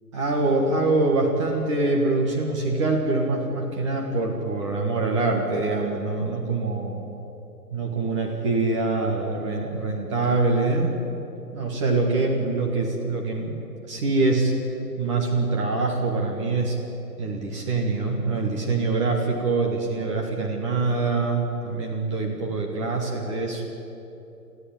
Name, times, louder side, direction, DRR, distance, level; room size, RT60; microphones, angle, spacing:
voice 1, 0.1-7.0 7.7-11.0 11.4-13.6 13.9-14.5 15.0-16.8 17.2-23.6, right 3 dB, 20° right, 0 dB, 1.5 m, -24 dB
24.5 x 14.5 x 8.8 m, 3.0 s
hypercardioid pair, 155°, 49 cm